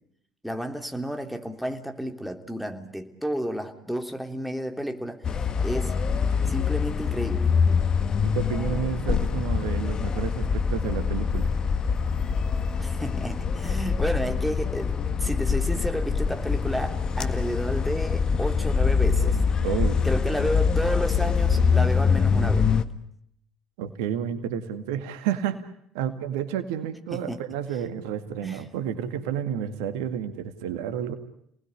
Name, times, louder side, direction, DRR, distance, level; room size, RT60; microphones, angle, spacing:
voice 1, 0.4-5.9 6.5-7.5 12.8-19.4 20.0-22.7 27.1-27.4 28.4-28.6, equal, ahead, 5 dB, 3.3 m, -31 dB
sound 1, 5.2-22.8, left 5 dB, 40° left, 1.7 m, -24 dB
voice 2, 8.2-11.5 19.6-20.0 23.8-25.6 25.9-31.2, right 9 dB, 75° right, 10 dB, 2.0 m, -30 dB
29.5 x 19.5 x 9.9 m, 0.75 s
hypercardioid pair, 60°, 2 cm